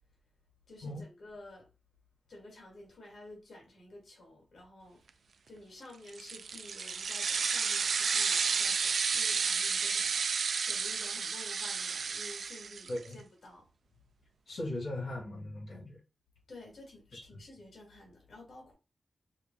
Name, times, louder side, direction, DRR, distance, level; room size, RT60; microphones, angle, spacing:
voice 1, 0.7-1.7 2.3-5.0 5.5-10.1 10.6-13.7 16.5-18.7, left 1 dB, 70° left, 2.6 m, -52 dB
sound 1, 6.1-13.1, right 5 dB, 70° right, 0.4 m, -31 dB
voice 2, 12.9-13.2 14.5-16.0 17.1-17.2, left 1 dB, 85° left, 2.7 m, -38 dB
7.1 x 2.5 x 2.4 m
wide cardioid pair, 150°, 0 cm